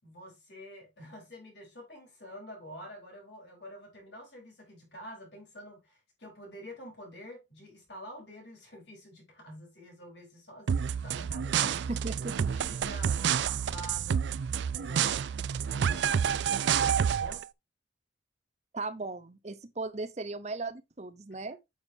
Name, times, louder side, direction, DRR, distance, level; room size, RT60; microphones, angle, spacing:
voice 1, 0.0-12.0 12.4-14.2 14.7-15.3 15.7-17.5 21.5-21.6, equal, 70° left, 4.1 m, -48 dB
sound 1, 10.7-17.4, right 8 dB, 70° right, 0.4 m, -29 dB
voice 2, 11.6-12.5 18.7-21.6, right 3 dB, 35° right, 0.8 m, -37 dB
9.3 x 6.4 x 2.7 m
head